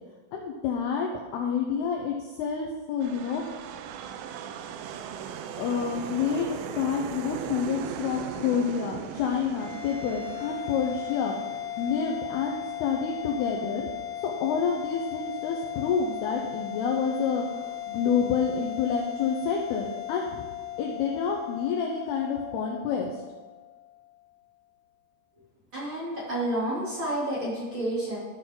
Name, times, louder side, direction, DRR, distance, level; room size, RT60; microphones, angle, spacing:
voice 1, 0.3-3.4 5.6-11.4 11.8-13.9 14.2-20.5 20.8-23.2, left 6 dB, 80° left, 1 dB, 2.4 m, -28 dB
sound 1, 3.0-21.3, right 8 dB, 90° right, 3.2 m, -41 dB
sound 2, 9.5-24.1, left 12 dB, 35° left, 2.1 m, -37 dB
voice 2, 25.7-28.2, right 1 dB, 30° right, -8 dB, 3.0 m, -30 dB
14.0 x 6.4 x 3.8 m, 1.4 s
omnidirectional pair, 5.5 m